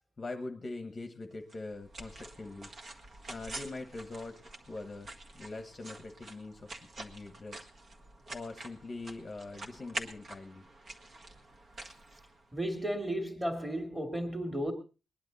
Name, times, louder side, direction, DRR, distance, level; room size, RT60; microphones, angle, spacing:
voice 1, 0.2-2.7 3.3-4.4 4.7-7.7 8.3-10.7, left 3 dB, 25° left, 1.2 m, -43 dB
sound 1, 1.5-12.8, right 2 dB, 40° right, 1.7 m, -47 dB
voice 2, 12.5-14.7, right 1 dB, 10° right, 2.4 m, -34 dB
20.5 x 11.0 x 4.0 m
wide cardioid pair, 165°, 0 cm